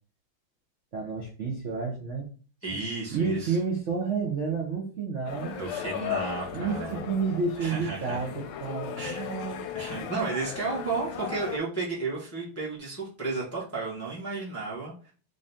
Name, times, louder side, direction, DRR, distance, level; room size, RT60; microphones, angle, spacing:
voice 1, 0.9-2.3 3.1-5.6 6.5-9.6 10.0-10.1, right 5 dB, 75° right, -2 dB, 0.6 m, -30 dB
voice 2, 2.6-3.6 5.6-7.0 7.6-8.2 9.0-9.2 9.7-15.1, right 3 dB, 15° left, -6 dB, 0.5 m, -33 dB
sound 1, 5.3-11.6, left 9 dB, 80° left, 1.3 m, -37 dB
3.7 x 2.7 x 3.4 m, 0.40 s
omnidirectional pair, 2.3 m